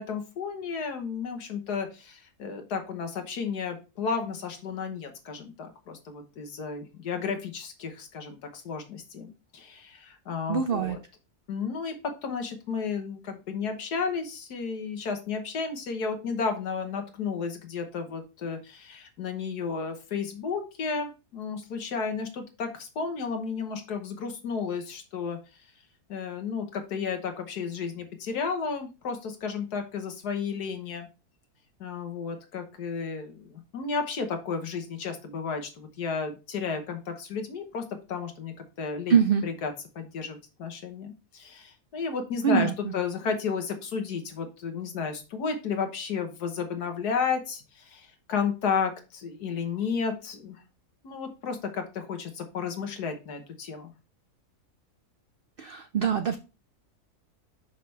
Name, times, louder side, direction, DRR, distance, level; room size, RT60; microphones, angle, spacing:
voice 1, 0.0-11.0 11.5-11.9 12.2-25.4 26.1-31.1 31.8-37.8 38.1-39.2 39.4-50.6 51.0-53.9, left 5 dB, 85° left, 6 dB, 1.7 m, -33 dB
voice 2, 10.5-11.0 39.1-39.4 42.4-42.7 55.6-56.4, right 7 dB, 90° right, 8 dB, 0.5 m, -23 dB
5.9 x 5.8 x 3.2 m, 0.30 s
omnidirectional pair, 1.7 m